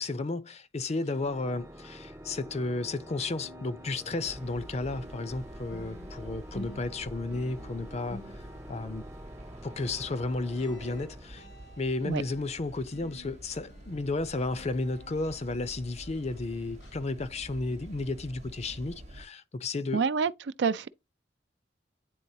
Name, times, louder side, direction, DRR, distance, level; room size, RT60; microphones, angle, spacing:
voice 1, 0.0-8.2 8.7-9.0 9.6-11.5 11.8-20.0, left 3 dB, 35° left, 0.5 m, -33 dB
sound 1, 0.9-3.0 3.3-16.4 16.8-17.0 17.5-17.6, equal, 85° left, 1.4 m, -52 dB
Organ, 1.0-12.0, equal, 15° right, 0.5 m, -47 dB
sound 2, 4.2-19.3, right 1 dB, 40° right, 0.8 m, -48 dB
voice 2, 19.9-20.3 20.6-20.9, right 5 dB, 70° right, 0.4 m, -26 dB
9.2 x 3.8 x 2.7 m
head